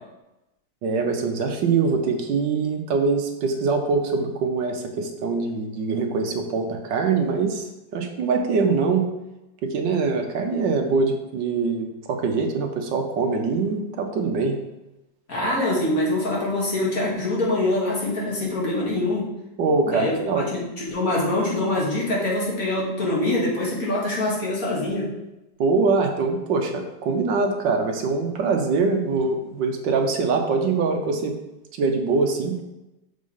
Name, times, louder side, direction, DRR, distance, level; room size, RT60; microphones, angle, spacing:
voice 1, 0.8-7.7 7.9-9.1 9.6-14.6 19.6-20.5 25.6-31.4 31.7-32.6, right 4 dB, 80° right, 4 dB, 1.5 m, -23 dB
voice 2, 15.3-19.3 19.8-25.1, left 2 dB, 50° left, -5 dB, 2.3 m, -24 dB
6.4 x 4.4 x 5.5 m, 0.97 s
omnidirectional pair, 2.0 m